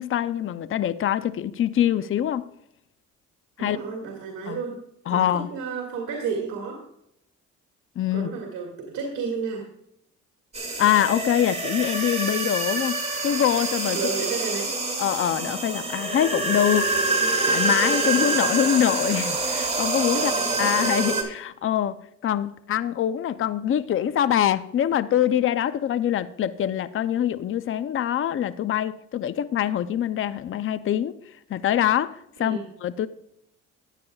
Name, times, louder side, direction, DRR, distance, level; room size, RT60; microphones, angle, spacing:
voice 1, 0.0-2.4 3.6-3.8 4.5-4.6 5.1-5.5 8.0-8.3 10.8-14.0 15.0-16.9 17.4-20.3 20.6-22.0 22.2-31.1 31.5-33.1, left 10 dB, 45° left, 0.5 m, -24 dB
voice 2, 3.6-4.8 5.1-6.8 8.1-9.7 13.9-14.7 18.1-18.4 20.1-20.7 32.4-32.7, right 5 dB, 90° right, 2.0 m, -32 dB
sound 1, 10.5-21.2, right 3 dB, 20° right, 2.3 m, -26 dB
14.0 x 9.4 x 2.3 m
cardioid pair, 90°, 30 cm